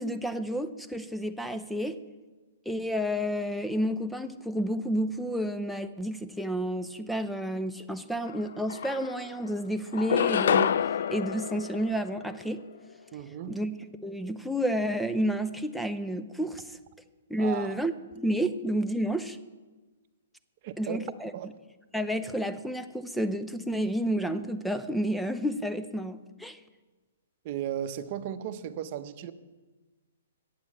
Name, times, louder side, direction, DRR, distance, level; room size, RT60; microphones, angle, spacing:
voice 1, 0.0-2.0 2.7-10.7 11.1-12.6 13.5-13.7 14.0-16.6 17.3-19.4 20.8-21.3 21.9-26.6, equal, ahead, 0.6 m, -30 dB
sound 1, 8.3-8.4 8.7-9.5 9.9-12.5, left 8 dB, 65° left, 0.3 m, -28 dB
voice 2, 13.1-13.6 17.4-17.7 20.6-21.0 21.3-21.5 27.4-29.3, right 10 dB, 45° right, 0.8 m, -35 dB
8.9 x 8.6 x 7.4 m
hypercardioid pair, 135°, 0 cm